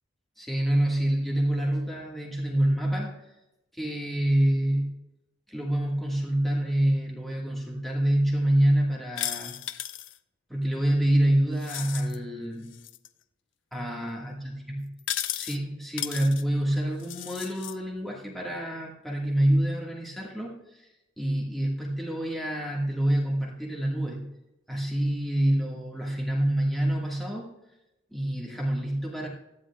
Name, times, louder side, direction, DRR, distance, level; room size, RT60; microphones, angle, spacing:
voice 1, 0.4-3.2 3.7-4.9 5.5-9.5 10.5-12.7 13.7-14.4 14.7-14.8 15.3-20.9 21.2-24.3 24.7-27.5 28.1-29.3, right 1 dB, ahead, -3 dB, 1.5 m, -26 dB
sound 1, 9.2-10.2 11.6-12.2 12.7-13.1 15.0-15.6 16.0-16.4 17.0-17.8, left 12 dB, 70° left, 0.4 m, -34 dB
16.5 x 12.5 x 2.3 m, 0.93 s
head